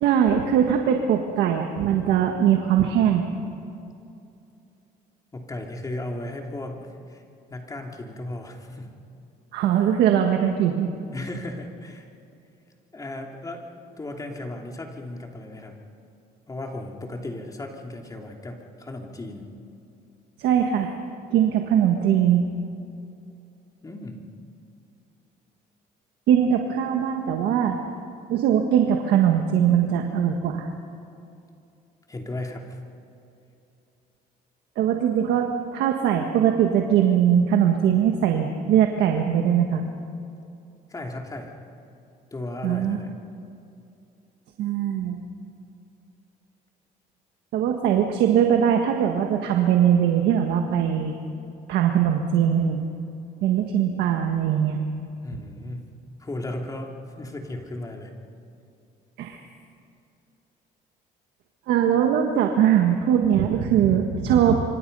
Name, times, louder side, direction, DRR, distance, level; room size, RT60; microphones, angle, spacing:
voice 1, 0.0-3.3 9.5-10.9 20.4-20.9 21.3-22.5 26.3-27.8 28.3-30.7 34.8-39.8 42.6-43.0 44.6-45.2 47.5-51.1 51.7-52.8 53.4-54.8 59.2-59.4 61.7-64.6, right 9 dB, 80° right, 3 dB, 1.6 m, -21 dB
voice 2, 5.3-7.2 7.5-8.9 11.1-12.1 12.9-13.7 14.0-15.8 16.5-19.5 23.8-24.2 32.1-32.8 40.9-41.5 42.3-43.1 55.2-55.9 56.2-58.1, left 1 dB, 20° left, 1 dB, 3.1 m, -35 dB
26.0 x 25.5 x 5.6 m, 2.7 s
cardioid pair, 110°, 17 cm